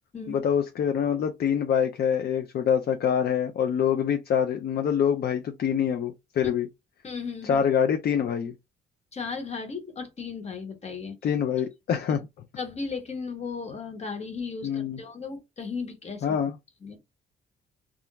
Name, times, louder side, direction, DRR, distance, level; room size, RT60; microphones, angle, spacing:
voice 1, 0.3-6.7 7.4-8.5 11.2-12.2 14.6-15.0 16.2-16.5, left 8 dB, 50° left, 0.4 m, -25 dB
voice 2, 7.0-7.6 9.1-11.1 12.1-12.2 12.6-16.2 16.8-17.0, left 5 dB, 35° left, 1.0 m, -35 dB
2.4 x 2.1 x 2.9 m
cardioid pair, 90°, 20 cm